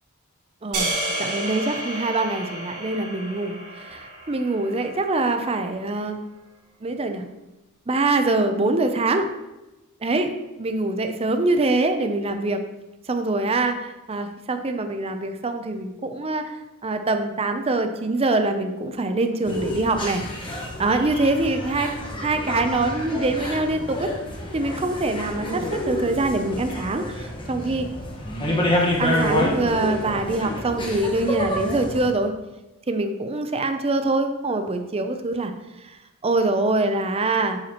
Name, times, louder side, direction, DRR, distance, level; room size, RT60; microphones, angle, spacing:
sound 1, 0.7-5.1, right 1 dB, 85° right, 2.9 m, -31 dB
voice 1, 1.2-6.2 6.8-7.2 7.9-9.3 10.0-10.3 10.6-12.6 13.1-16.5 16.8-21.9 22.2-24.1 24.5-27.9 29.0-32.3 32.9-35.5 35.9-36.0 36.2-37.6, right 2 dB, 25° right, 7 dB, 0.6 m, -24 dB
sound 2, 19.4-32.1, left 1 dB, 25° left, 1.3 m, -28 dB
8.4 x 7.7 x 3.0 m, 1.0 s
head